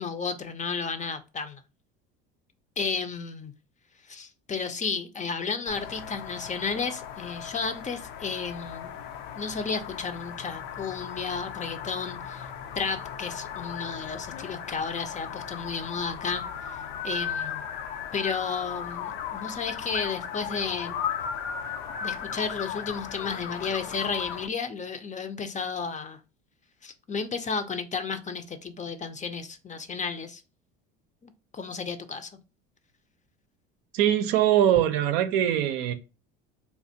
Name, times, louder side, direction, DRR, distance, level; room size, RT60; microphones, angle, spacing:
voice 1, 0.0-1.6 2.8-3.5 4.1-8.9 9.3-12.5 12.8-16.4 16.7-17.6 18.1-21.0 22.0-26.2 26.8-30.4 31.2-32.3, left 5 dB, 25° left, 0.5 m, -33 dB
sound 1, 5.7-24.5, left 8 dB, 75° left, 0.6 m, -36 dB
voice 2, 33.9-35.9, right 11 dB, 75° right, 0.6 m, -22 dB
3.3 x 2.4 x 2.7 m
hypercardioid pair, 75°, 31 cm